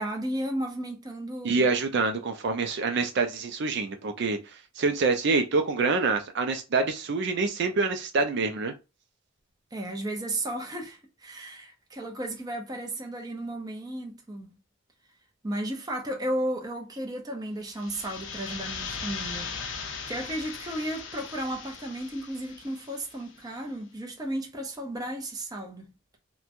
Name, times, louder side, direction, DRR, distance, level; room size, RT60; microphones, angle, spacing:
voice 1, 0.0-1.7 9.7-14.6 15.4-19.6 20.1-25.9, right 1 dB, 20° right, 0.6 m, -34 dB
voice 2, 1.4-8.7, right 4 dB, 60° right, 0.4 m, -26 dB
sound 1, 17.6-23.3, left 5 dB, 65° left, 0.5 m, -39 dB
3.0 x 2.2 x 2.4 m
head